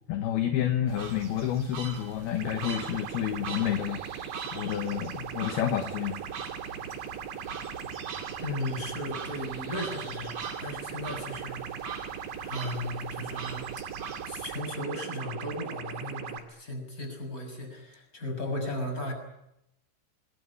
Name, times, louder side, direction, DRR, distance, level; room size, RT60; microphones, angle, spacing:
voice 1, 0.1-4.3 4.5-6.2, left 10 dB, 65° left, 6 dB, 2.7 m, -29 dB
sound 1, 0.9-14.6, right 5 dB, 40° right, 2.7 m, -43 dB
sound 2, 2.4-16.4, right 8 dB, 60° right, 3.7 m, -39 dB
voice 2, 8.4-11.9 12.4-13.7 14.3-19.1, left 1 dB, 15° left, 5 dB, 6.4 m, -36 dB
26.0 x 21.5 x 9.8 m, 0.84 s
omnidirectional pair, 5.9 m